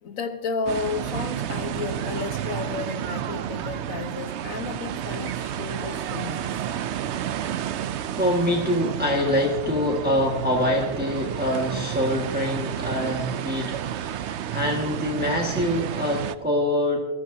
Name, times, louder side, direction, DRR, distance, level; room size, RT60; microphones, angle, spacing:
voice 1, 0.0-6.6, left 4 dB, 80° left, 9 dB, 1.5 m, -32 dB
sound 1, 0.7-16.4, right 10 dB, 65° right, 0.8 m, -31 dB
voice 2, 8.2-17.0, left 1 dB, 5° right, -1 dB, 1.7 m, -25 dB
22.0 x 14.5 x 2.8 m, 1.0 s
omnidirectional pair, 1.4 m